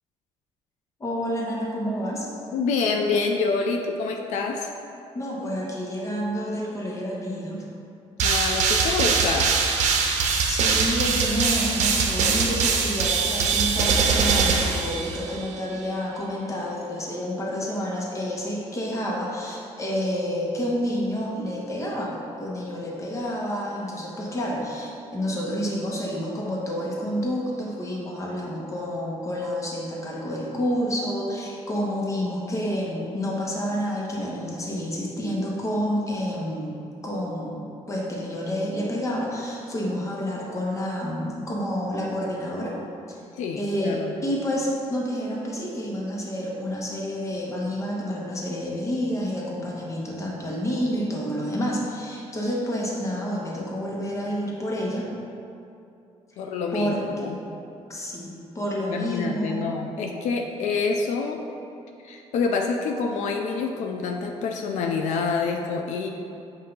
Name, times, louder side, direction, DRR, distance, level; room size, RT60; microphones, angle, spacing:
voice 1, 1.0-2.3 5.1-7.6 10.5-36.8 37.0-37.6 37.9-42.8 43.1-43.2 43.6-55.0 56.7-57.4 57.9-59.6, equal, 25° left, -3 dB, 1.2 m, -29 dB
voice 2, 2.5-4.7 8.2-9.5 43.3-44.1 56.4-57.4 58.9-61.4 62.0-66.1, left 4 dB, 80° left, 3 dB, 0.5 m, -27 dB
sound 1, 8.2-15.5, right 5 dB, 85° right, 0.7 m, -22 dB
7.9 x 2.8 x 5.3 m, 2.7 s
cardioid pair, 130°, 12 cm